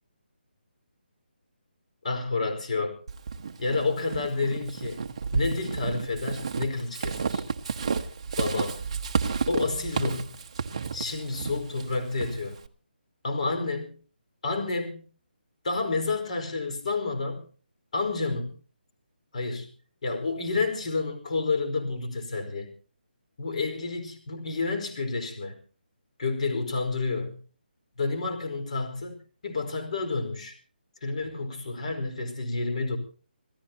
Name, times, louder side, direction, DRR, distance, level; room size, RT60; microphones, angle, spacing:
voice 1, 2.0-3.0 3.6-5.0 5.3-7.4 8.4-8.8 9.5-10.4 10.9-12.6 13.2-13.9 14.4-15.0 15.6-17.4 17.9-18.5 19.3-19.7 20.0-22.7 23.4-25.6 26.2-27.4 28.0-29.2 29.4-30.6 31.0-33.0, left 3 dB, 40° left, 6 dB, 4.9 m, -29 dB
Walk footsteps / Squeak, 3.1-12.7, right 5 dB, 30° right, 1.2 m, -32 dB
27.0 x 16.0 x 2.9 m, 0.40 s
hypercardioid pair, 175°, 6 cm